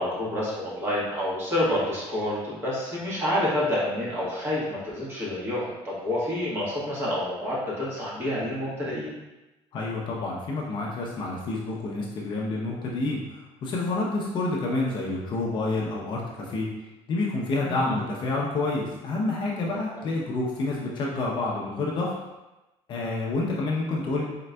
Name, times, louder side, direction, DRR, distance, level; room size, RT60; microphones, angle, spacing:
voice 1, 0.0-9.1 17.6-18.0 19.9-20.0, left 1 dB, 20° right, -8 dB, 1.3 m, -28 dB
voice 2, 9.7-16.7 17.1-22.1 22.9-24.2, left 2 dB, 45° left, -3 dB, 0.6 m, -28 dB
4.2 x 3.8 x 2.2 m, 1.0 s
cardioid pair, 165°, 12 cm